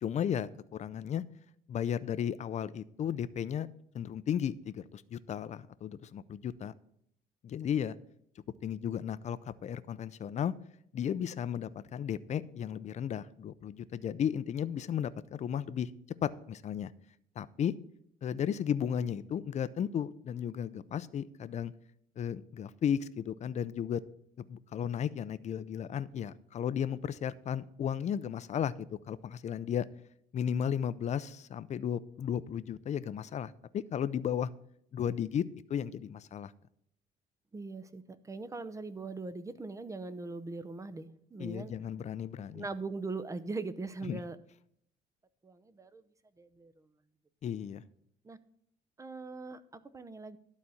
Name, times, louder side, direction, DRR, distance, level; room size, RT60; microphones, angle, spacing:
voice 1, 0.0-1.2 1.7-3.7 3.9-6.7 7.4-8.0 8.6-10.5 10.9-15.9 16.2-16.9 17.4-17.8 18.2-21.7 22.2-24.0 24.4-28.7 29.1-29.9 30.3-34.5 34.9-36.5 41.4-42.7 44.1-44.2 47.4-47.8, left 9 dB, 45° left, 15 dB, 0.6 m, -34 dB
voice 2, 37.5-41.7 42.5-44.4 45.4-46.0 46.4-46.9 48.2-48.4 49.0-50.4, right 3 dB, 20° right, 13 dB, 0.7 m, -41 dB
12.0 x 4.2 x 7.7 m, 0.70 s
cardioid pair, 110°, 17 cm